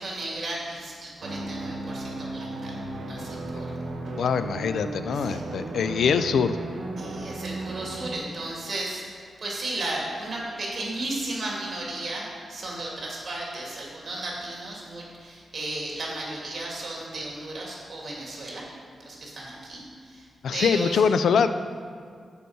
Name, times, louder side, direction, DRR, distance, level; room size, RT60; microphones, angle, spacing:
voice 1, 0.0-2.8 3.1-3.7 5.1-5.4 7.0-18.6 19.0-21.0, right 2 dB, 50° right, -3 dB, 2.2 m, -34 dB
sound 1, 1.2-8.2, right 2 dB, 75° right, 1.2 m, -35 dB
voice 2, 4.1-6.6 20.4-21.5, left 6 dB, 80° left, 11 dB, 0.3 m, -23 dB
6.9 x 5.2 x 6.3 m, 2.1 s
wide cardioid pair, 115°, 0 cm